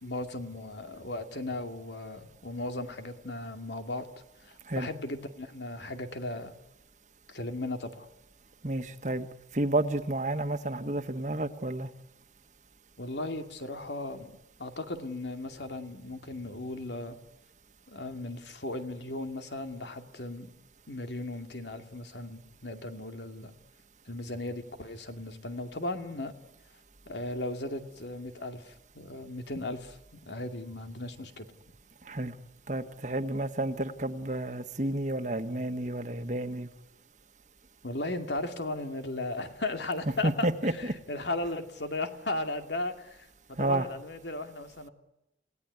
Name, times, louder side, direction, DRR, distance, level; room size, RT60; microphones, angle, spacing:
voice 1, 0.0-4.1 4.4-6.5 7.3-8.1 13.0-14.3 14.6-17.2 17.9-20.5 20.9-23.5 24.1-26.3 27.1-31.5 37.8-44.9, left 2 dB, 80° left, 6 dB, 2.5 m, -36 dB
voice 2, 8.6-9.3 9.5-11.9 29.5-29.6 32.1-32.3 32.7-36.7 40.0-40.9 43.6-43.9, right 1 dB, 40° right, 8 dB, 1.4 m, -31 dB
29.5 x 17.5 x 9.6 m, 0.93 s
head